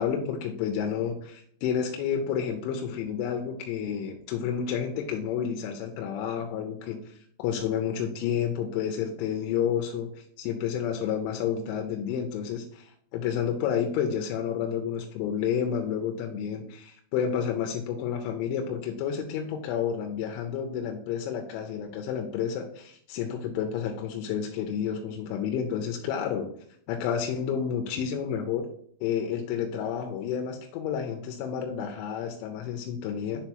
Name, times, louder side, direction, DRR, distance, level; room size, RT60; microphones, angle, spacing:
voice 1, 0.0-10.1 10.4-26.5 26.9-28.7 29.0-33.4, left 8 dB, 85° left, 4 dB, 3.0 m, -30 dB
7.0 x 3.7 x 4.5 m, 0.64 s
omnidirectional pair, 5.5 m